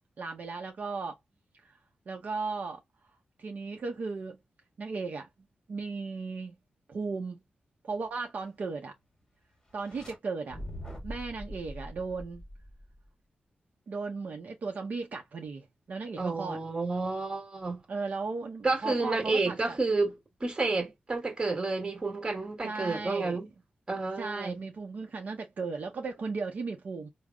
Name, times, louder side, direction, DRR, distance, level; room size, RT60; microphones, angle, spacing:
voice 1, 0.2-1.2 1.6-1.8 2.1-2.8 3.4-4.4 4.8-5.3 5.7-6.6 6.9-7.4 7.8-8.9 9.7-10.6 11.0-12.4 13.9-16.6 17.9-19.8 22.6-23.4 24.2-27.1, right 4 dB, 55° right, 0.6 m, -36 dB
sound 1, 9.7-10.2 10.5-13.1, equal, 20° left, 1.3 m, -43 dB
voice 2, 16.2-17.8 18.6-23.5 23.9-24.6, right 3 dB, 25° right, 1.3 m, -30 dB
5.0 x 2.0 x 2.2 m
wide cardioid pair, 170°, 3 cm